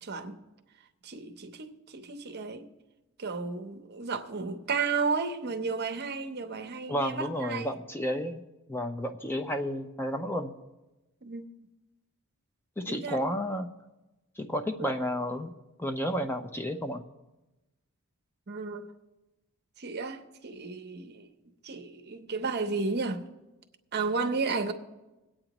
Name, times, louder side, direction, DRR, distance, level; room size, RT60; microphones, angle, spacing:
voice 1, 0.0-0.4 1.0-2.7 3.2-7.7 11.2-11.5 12.9-13.2 14.8-14.9 18.5-18.9 19.8-21.3 21.6-23.3 23.9-24.7, right 4 dB, 45° right, 0.8 m, -33 dB
voice 2, 6.9-8.4 8.7-10.5 12.8-13.7 14.4-15.5 15.8-17.0, equal, 10° left, 0.5 m, -31 dB
21.5 x 8.7 x 3.0 m
head